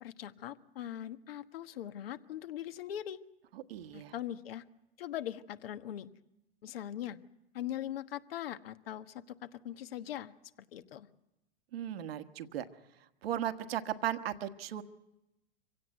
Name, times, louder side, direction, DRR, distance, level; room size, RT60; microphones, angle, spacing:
voice 1, 0.0-3.2 3.9-4.6 5.0-6.1 6.6-7.2 7.5-10.3 10.7-11.1, left 11 dB, 70° left, 10 dB, 1.4 m, -41 dB
voice 2, 3.5-4.1 11.7-12.7 13.2-14.8, right 11 dB, 70° right, 9 dB, 1.5 m, -36 dB
25.0 x 17.0 x 8.2 m, 0.94 s
hypercardioid pair, 105°, 31 cm